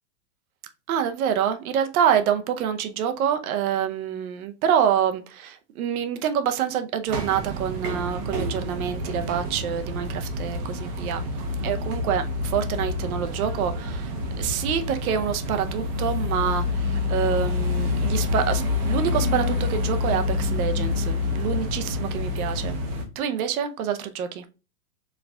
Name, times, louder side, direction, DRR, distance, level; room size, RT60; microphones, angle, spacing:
voice 1, 0.9-11.3 11.6-22.8 23.2-24.4, right 8 dB, 65° right, 0.7 m, -26 dB
sound 1, 7.1-23.0, left 3 dB, 30° right, 0.6 m, -27 dB
4.6 x 3.4 x 2.2 m
supercardioid pair, 150°, 47 cm